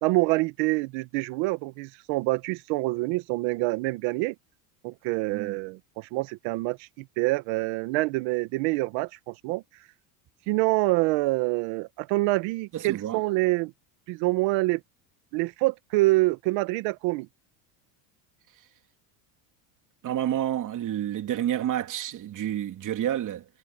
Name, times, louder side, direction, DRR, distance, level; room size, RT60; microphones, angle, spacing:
voice 1, 0.0-4.3 4.8-9.6 10.5-13.7 14.1-14.8 15.3-17.3, right 22 dB, 70° right, 1.6 m, -26 dB
voice 2, 12.7-13.2 20.0-23.4, right 11 dB, 40° right, 3.3 m, -29 dB
cardioid pair, 135°, 46 cm